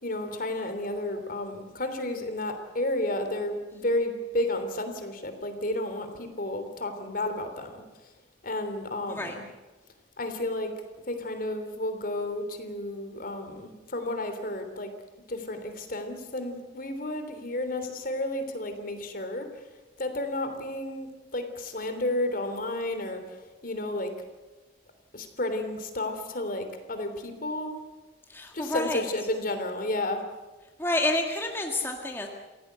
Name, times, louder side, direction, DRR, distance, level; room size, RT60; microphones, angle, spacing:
voice 1, 0.0-7.8 8.4-9.4 10.2-10.7 11.1-14.9 15.3-19.7 20.0-24.1 25.1-27.8 28.5-30.2, left 1 dB, 50° left, 7 dB, 3.2 m, -32 dB
voice 2, 28.3-29.0 30.8-32.3, left 2 dB, 15° left, 2 dB, 1.8 m, -29 dB
27.0 x 17.0 x 8.2 m, 1.2 s
head